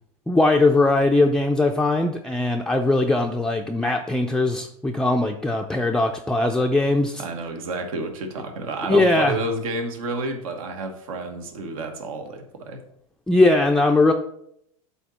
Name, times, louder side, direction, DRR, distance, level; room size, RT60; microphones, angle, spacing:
voice 1, 0.3-7.2 8.9-9.4 13.3-14.1, left 2 dB, 5° left, 2 dB, 0.4 m, -20 dB
voice 2, 7.2-12.8, right 2 dB, 80° right, 5 dB, 1.2 m, -30 dB
7.9 x 2.9 x 6.1 m, 0.73 s
supercardioid pair, 115°, 18 cm